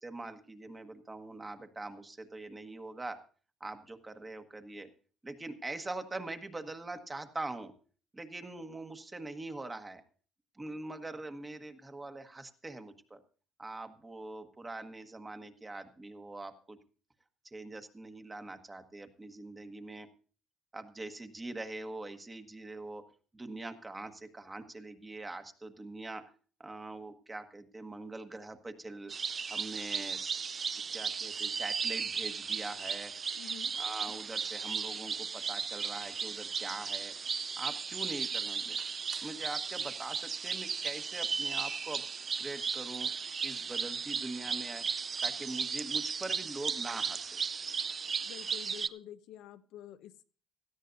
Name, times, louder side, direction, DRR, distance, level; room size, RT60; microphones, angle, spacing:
voice 1, 0.0-3.2 3.6-4.9 5.2-7.7 8.1-10.0 10.5-13.2 13.6-16.8 17.4-20.1 20.7-23.0 23.3-26.2 26.6-29.1 29.5-30.4 30.9-33.1 33.8-37.1 37.6-38.8 39.2-42.0 42.4-43.1 43.4-44.8 45.2-47.4, right 2 dB, 15° right, 7 dB, 1.3 m, -43 dB
sound 1, 29.1-48.9, right 6 dB, 35° right, 0.5 m, -36 dB
voice 2, 33.4-33.7 48.2-50.3, left 11 dB, 70° left, 10 dB, 0.7 m, -49 dB
17.5 x 13.0 x 2.6 m, 0.41 s
cardioid pair, 105°, 0 cm